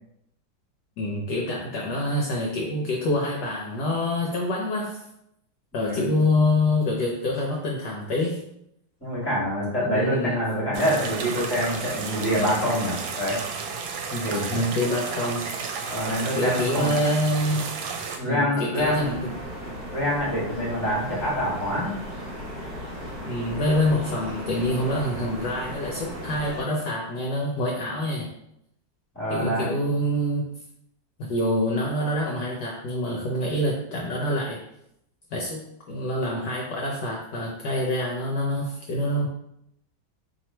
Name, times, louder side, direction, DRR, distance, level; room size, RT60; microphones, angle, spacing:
voice 1, 1.0-5.0 5.7-8.4 9.8-10.4 14.1-14.3 14.5-15.5 16.4-17.6 18.2-19.3 23.3-28.3 29.3-30.5 31.2-34.6 35.3-39.3, left 1 dB, 70° left, -1 dB, 1.1 m, -26 dB
voice 2, 5.7-6.1 9.0-13.4 14.2-14.7 15.9-16.9 18.2-19.1 19.9-22.0 29.1-29.8, equal, 5° left, -7 dB, 1.3 m, -26 dB
sound 1, 10.7-18.2, right 5 dB, 80° right, 1.3 m, -32 dB
sound 2, 18.8-26.6, equal, 55° right, 1.5 m, -36 dB
3.1 x 2.9 x 4.3 m, 0.78 s
omnidirectional pair, 2.1 m